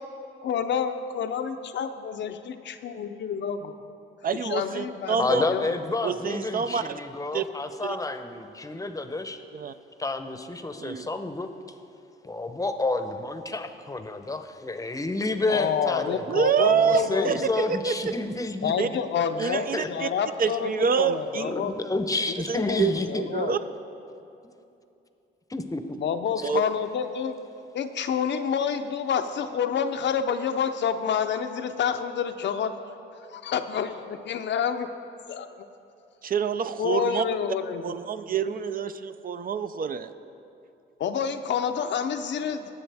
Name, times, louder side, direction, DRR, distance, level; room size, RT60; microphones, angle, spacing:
voice 1, 0.4-3.7 4.4-5.7 15.5-17.5 18.6-22.0 22.5-23.5 26.0-27.4 27.7-32.7 33.2-34.9 35.3-35.7 36.8-37.9 41.0-42.7, left 7 dB, 65° left, 8 dB, 0.6 m, -28 dB
voice 2, 4.2-5.5 6.0-7.0 7.3-7.4 7.8-8.0 9.5-9.7 10.8-11.1 16.3-18.0 18.8-18.9 19.4-20.1 20.4-21.5 22.5-22.9 23.2-23.6 26.4-26.6 36.2-37.2 37.8-40.1, right 7 dB, 45° right, 11 dB, 0.5 m, -26 dB
voice 3, 5.2-9.4 10.0-11.5 12.2-19.0 19.4-19.9 20.8-20.9 21.4-23.3 25.5-26.0 26.4-26.5 27.5-27.6 28.4-28.5, left 2 dB, 15° left, 8 dB, 0.7 m, -30 dB
19.0 x 7.0 x 3.4 m, 2.7 s
cardioid pair, 80°, 20 cm